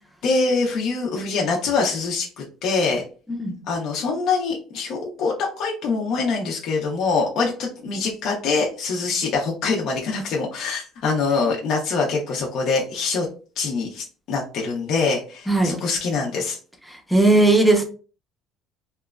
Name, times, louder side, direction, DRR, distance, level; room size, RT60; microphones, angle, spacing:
voice 1, 0.2-3.0 3.7-13.3 13.6-16.6, left 4 dB, 60° left, -1 dB, 0.5 m, -24 dB
voice 2, 16.9-17.8, right 2 dB, ahead, 2 dB, 0.5 m, -17 dB
2.9 x 2.2 x 2.3 m, 0.38 s
cardioid pair, 140°, 0 cm